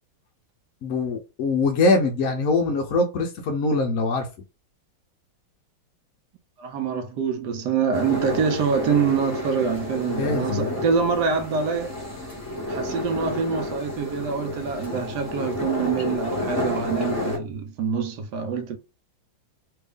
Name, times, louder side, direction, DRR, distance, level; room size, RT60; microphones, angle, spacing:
voice 1, 0.8-4.3 10.2-10.8, left 3 dB, 65° left, 0.9 m, -23 dB
voice 2, 6.6-12.0 12.6-18.8, right 6 dB, 70° right, 1.2 m, -25 dB
sound 1, 7.9-17.4, left 1 dB, 10° left, 0.8 m, -30 dB
3.4 x 2.5 x 3.5 m
omnidirectional pair, 2.1 m